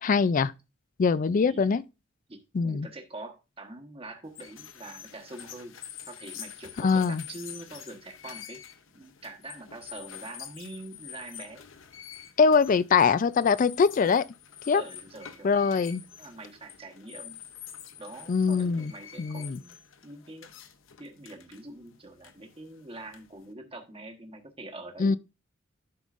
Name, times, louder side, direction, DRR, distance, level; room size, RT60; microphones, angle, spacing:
voice 1, 0.0-0.5 1.0-1.8 2.5-2.9 6.8-7.2 12.4-14.3 14.7-14.8 15.4-16.0 18.3-18.9 19.2-19.6 25.0-25.2, left 5 dB, 40° left, 0.4 m, -23 dB
voice 2, 2.3-5.8 6.0-8.6 8.9-11.6 14.7-15.7 16.2-17.4 18.0-20.5 21.0-25.2, right 2 dB, 30° right, 1.2 m, -44 dB
sound 1, 4.3-23.5, left 9 dB, 75° left, 0.8 m, -47 dB
11.5 x 5.4 x 2.5 m
head